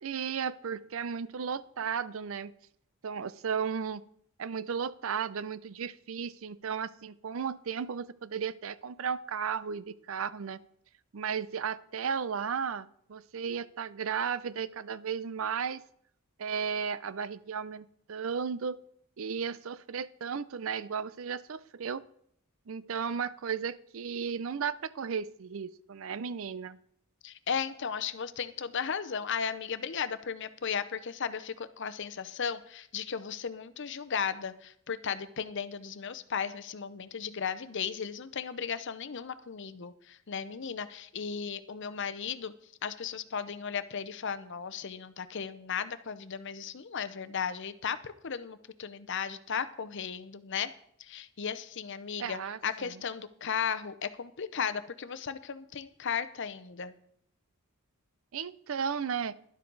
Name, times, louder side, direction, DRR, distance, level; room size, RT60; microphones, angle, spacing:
voice 1, 0.0-2.5 3.0-4.0 4.4-10.6 11.1-15.8 16.4-18.8 19.2-22.0 22.7-26.8 52.2-53.0 58.3-59.3, right 6 dB, 65° right, 17 dB, 0.5 m, -34 dB
voice 2, 27.2-42.5 42.8-50.7 51.0-56.9, left 7 dB, 55° left, 13 dB, 0.7 m, -35 dB
12.0 x 11.5 x 4.0 m, 0.67 s
head